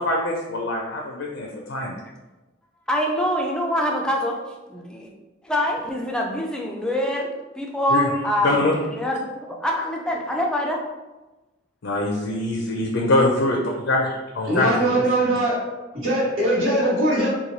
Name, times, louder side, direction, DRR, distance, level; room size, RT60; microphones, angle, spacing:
voice 1, 0.0-2.0 7.9-8.1 8.4-8.7 11.8-13.6 13.9-14.9 15.2-15.4, left 2 dB, 70° left, 0 dB, 0.5 m, -23 dB
voice 2, 2.9-4.4 4.7-5.1 5.4-8.6 8.9-10.8, equal, 5° left, -1 dB, 0.3 m, -25 dB
voice 3, 14.5-15.6 16.0-17.3, right 1 dB, 85° right, -10 dB, 1.4 m, -21 dB
3.0 x 2.3 x 3.9 m, 1.1 s
head